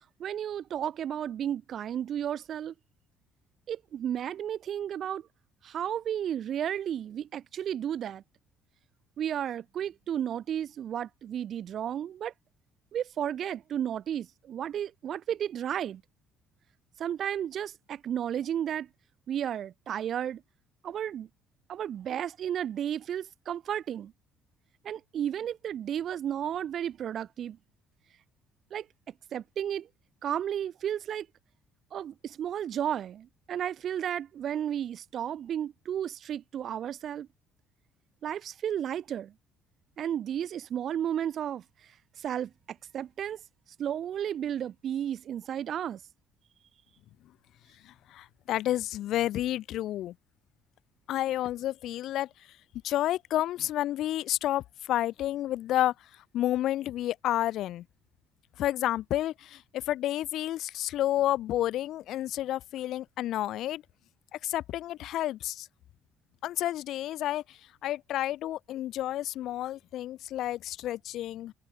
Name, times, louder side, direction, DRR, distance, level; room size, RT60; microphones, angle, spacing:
voice 1, 0.2-2.7 3.7-5.3 5.6-8.2 9.2-12.3 12.9-16.0 17.0-18.9 19.3-20.4 20.8-21.3 21.7-24.1 24.8-27.6 28.7-28.9 29.3-29.9 30.2-31.3 31.9-37.3 38.2-39.3 40.0-41.6 42.2-43.4 43.8-46.0, right 10 dB, 55° right, 0.9 m, -33 dB
voice 2, 47.8-50.1 51.1-52.3 52.8-55.9 56.3-57.8 58.6-63.8 64.3-65.7 66.4-71.5, left 13 dB, 65° left, 1.4 m, -30 dB
hypercardioid pair, 55°, 0 cm